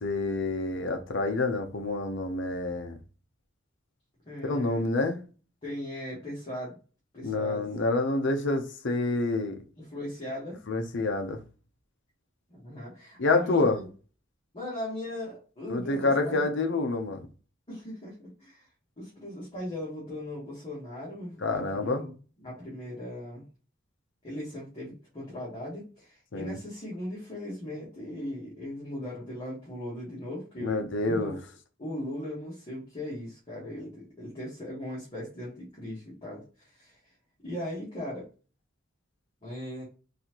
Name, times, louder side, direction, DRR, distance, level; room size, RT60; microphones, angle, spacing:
voice 1, 0.0-3.0 4.4-5.2 7.2-9.6 10.7-11.4 13.2-13.8 15.7-17.2 21.4-22.0 26.3-26.6 30.6-31.3, left 2 dB, 65° left, 0.7 m, -27 dB
voice 2, 4.2-4.9 5.6-6.8 7.1-7.7 9.8-10.6 12.5-13.9 14.5-16.5 17.7-18.7 19.0-23.4 24.2-31.4 31.8-37.0 37.4-38.3 39.4-39.8, left 1 dB, 30° left, 1.4 m, -38 dB
4.1 x 2.7 x 2.9 m
head